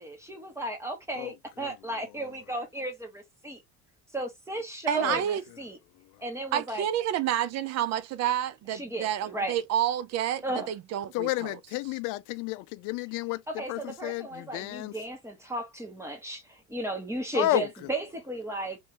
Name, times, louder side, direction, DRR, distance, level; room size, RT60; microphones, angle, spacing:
voice 1, 0.0-3.6 4.1-5.8 6.2-6.9 8.7-9.5 10.4-10.7 13.6-18.8, right 2 dB, 5° right, 1.3 m, -35 dB
voice 2, 1.2-2.4 5.0-5.6 5.9-6.2 11.1-15.0 17.3-17.9, left 17 dB, 60° left, 0.5 m, -33 dB
voice 3, 4.9-5.4 6.5-11.3, right 11 dB, 45° right, 0.7 m, -29 dB
3.2 x 2.7 x 3.4 m
supercardioid pair, 115°, 36 cm